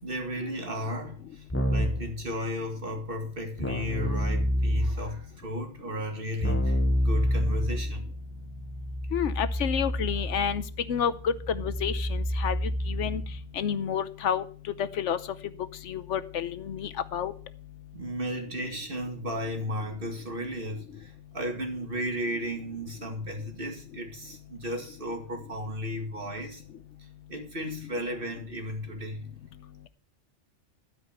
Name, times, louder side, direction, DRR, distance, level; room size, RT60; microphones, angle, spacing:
voice 1, 0.0-8.1 17.9-26.6 27.0-29.3, equal, 50° right, 4 dB, 2.4 m, -34 dB
Keyboard (musical), 1.5-2.1 3.6-5.2 6.4-13.4, equal, 15° left, 0.6 m, -29 dB
voice 2, 9.1-10.6 10.9-13.2 13.6-14.4 14.8-15.2 15.9-17.3, left 8 dB, 85° left, 12 dB, 1.1 m, -29 dB
12.5 x 5.1 x 8.0 m, 0.43 s
omnidirectional pair, 1.2 m